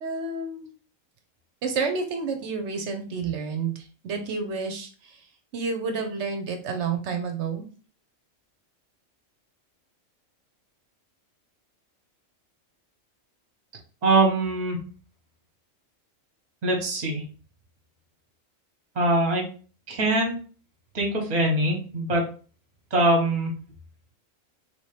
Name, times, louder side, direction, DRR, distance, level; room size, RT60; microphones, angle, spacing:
voice 1, 0.0-0.7 1.6-5.2 5.5-7.6, right 4 dB, 65° right, 5 dB, 0.9 m, -30 dB
voice 2, 14.0-14.8 16.6-17.2 18.9-19.4 19.9-20.3 20.9-22.2 22.9-23.5, right 2 dB, 35° right, 1 dB, 1.0 m, -22 dB
3.2 x 2.8 x 3.2 m, 0.39 s
omnidirectional pair, 1.4 m